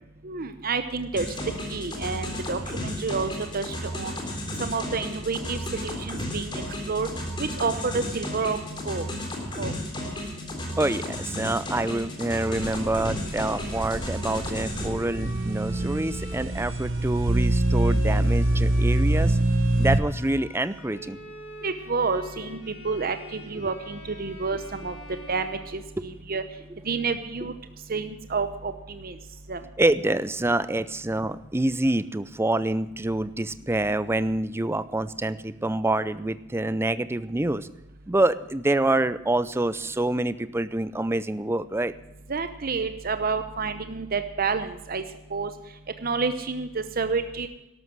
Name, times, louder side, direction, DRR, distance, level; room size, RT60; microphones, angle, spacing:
voice 1, 0.2-1.3 1.7-4.2 4.6-7.1 7.4-8.6 8.8-9.1 9.6-9.7 21.6-22.6 22.8-24.9 25.3-26.4 26.8-27.5 27.9-29.2 29.5-29.6 42.3-45.0 45.3-45.5 46.0-47.5, right 4 dB, 50° right, 9 dB, 0.9 m, -29 dB
sound 1, 1.2-14.9, left 1 dB, 25° left, 3.6 m, -33 dB
voice 2, 10.8-19.4 19.8-21.2 26.0-26.1 29.8-37.7 38.1-41.9, right 2 dB, 15° right, 15 dB, 0.5 m, -26 dB
Bowed string instrument, 12.0-26.3, left 2 dB, 75° left, 5.0 m, -45 dB
sound 2, 12.6-20.0, right 1 dB, 70° right, 1.0 m, -25 dB
12.5 x 12.5 x 6.2 m, 0.95 s
head